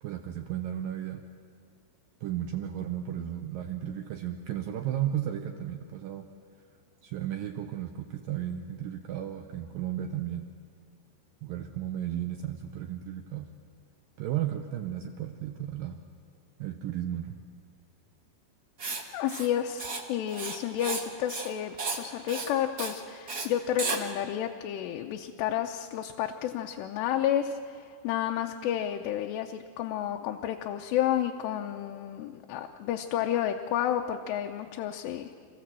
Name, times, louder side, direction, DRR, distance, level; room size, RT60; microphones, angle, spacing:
voice 1, 0.0-1.2 2.2-6.3 7.0-10.5 11.4-13.5 14.2-16.0 16.6-17.4, right 11 dB, 80° right, 5 dB, 2.0 m, -34 dB
Writing, 18.8-19.0 19.3-19.5 19.8-20.0 20.3-21.0 21.3-21.5 21.8-22.0 22.3-22.5 22.8-23.0 23.3-23.5 23.8-24.0, right 4 dB, 60° right, 0.9 m, -33 dB
voice 2, 19.1-35.3, left 10 dB, 80° left, 3 dB, 2.9 m, -31 dB
27.0 x 15.5 x 7.6 m, 2.2 s
omnidirectional pair, 4.9 m